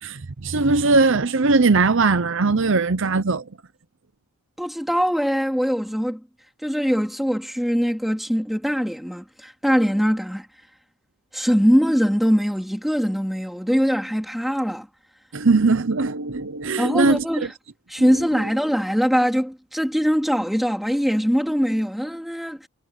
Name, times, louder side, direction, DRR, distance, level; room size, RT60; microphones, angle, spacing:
voice 1, 0.0-3.4 15.3-17.5 18.0-18.1, right 3 dB, 55° right, 0.8 m, -20 dB
voice 2, 4.6-6.2 6.6-10.5 11.3-14.9 16.8-17.5 17.9-22.7, equal, ahead, 3.3 m, -22 dB
head